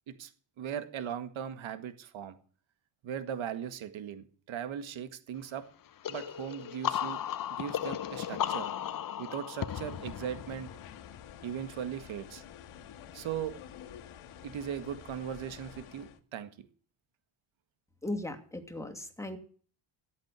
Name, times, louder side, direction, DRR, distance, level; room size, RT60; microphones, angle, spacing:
voice 1, 0.6-2.4 3.0-5.7 6.1-7.2 7.5-8.7 9.2-10.7 11.4-12.4 13.1-13.5 14.4-16.5, right 9 dB, 65° right, 10 dB, 2.0 m, -38 dB
sound 1, 6.0-11.6, left 10 dB, 40° left, 0.9 m, -36 dB
sound 2, 9.7-16.2, left 9 dB, 80° left, 2.0 m, -50 dB
voice 2, 18.0-19.4, left 1 dB, 5° left, 4 dB, 2.5 m, -37 dB
14.5 x 8.6 x 8.3 m, 0.43 s
cardioid pair, 105°, 50 cm